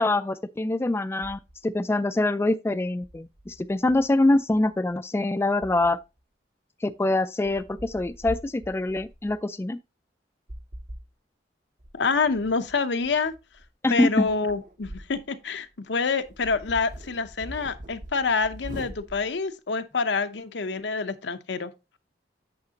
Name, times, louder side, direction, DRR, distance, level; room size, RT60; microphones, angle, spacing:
voice 1, 0.0-6.0 6.8-9.8 13.8-14.3, left 2 dB, 15° left, 0.3 m, -24 dB
sound 1, 1.2-1.8 3.0-5.0 5.6-6.2 6.9-7.0 7.4-9.4 10.5-11.1 11.8-15.3 15.7-15.8 16.2-19.4, right 1 dB, 45° right, 0.9 m, -43 dB
voice 2, 11.9-13.3 13.9-21.7, left 4 dB, 80° left, 0.8 m, -27 dB
8.7 x 6.6 x 2.8 m
head